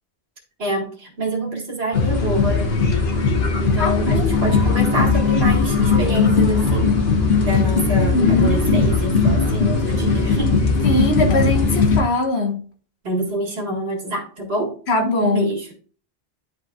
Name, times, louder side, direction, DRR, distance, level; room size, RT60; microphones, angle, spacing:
voice 1, 0.6-2.7 3.6-6.9 7.4-10.6 13.0-14.7 15.2-15.7, right 1 dB, 80° right, 1 dB, 2.1 m, -26 dB
sound 1, 1.9-12.0, left 4 dB, 75° left, 1.3 m, -18 dB
voice 2, 3.8-4.3 8.1-8.9 10.8-12.6 14.9-15.5, left 2 dB, 90° left, 1 dB, 1.6 m, -21 dB
11.0 x 4.3 x 2.4 m, 0.42 s
omnidirectional pair, 1.0 m